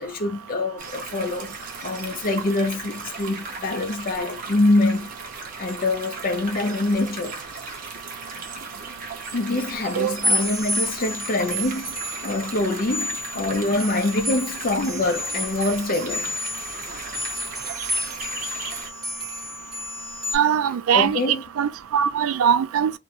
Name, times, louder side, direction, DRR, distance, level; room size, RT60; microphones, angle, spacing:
voice 1, 0.0-1.6 1.8-5.1 5.6-7.4 9.3-16.3 20.9-21.4, left 2 dB, 40° left, 0.4 m, -25 dB
sound 1, 0.8-18.9, right 4 dB, 40° right, 0.6 m, -37 dB
voice 2, 10.0-10.5 20.3-22.9, right 8 dB, 75° right, 0.3 m, -22 dB
sound 2, 10.2-20.4, equal, ahead, 1.2 m, -30 dB
2.5 x 2.1 x 2.8 m
head